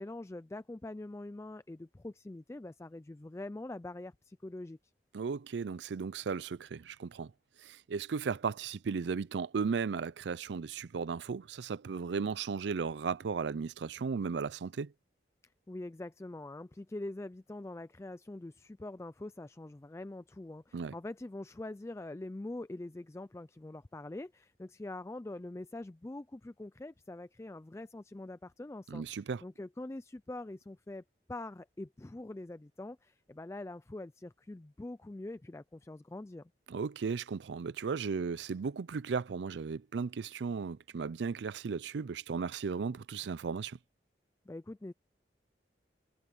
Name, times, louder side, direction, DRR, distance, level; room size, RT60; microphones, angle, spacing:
voice 1, 0.0-4.8 15.7-31.0 31.3-36.5 44.5-44.9, left 2 dB, 15° left, 0.3 m, -44 dB
voice 2, 5.1-7.3 7.6-14.9 20.7-20.9 28.9-29.4 36.7-43.8, right 5 dB, 80° right, 0.4 m, -35 dB
head